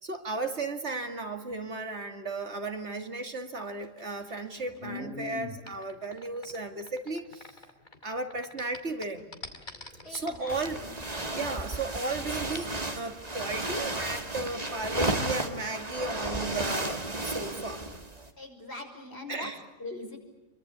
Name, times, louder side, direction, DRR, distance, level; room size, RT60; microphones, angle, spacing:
voice 1, 0.0-7.5 8.0-9.3 10.1-10.8 11.4-12.7 13.0-17.8 19.3-19.6, right 3 dB, 60° right, 6 dB, 2.6 m, -35 dB
sound 1, 3.7-8.0 8.3-10.5, left 2 dB, 40° left, 2.9 m, -43 dB
voice 2, 10.0-10.9 18.4-19.5 19.8-20.2, left 2 dB, 55° left, 3 dB, 6.1 m, -42 dB
sound 2, 10.5-18.3, right 2 dB, 30° right, 2.3 m, -33 dB
28.0 x 24.0 x 8.6 m, 1.0 s
omnidirectional pair, 1.3 m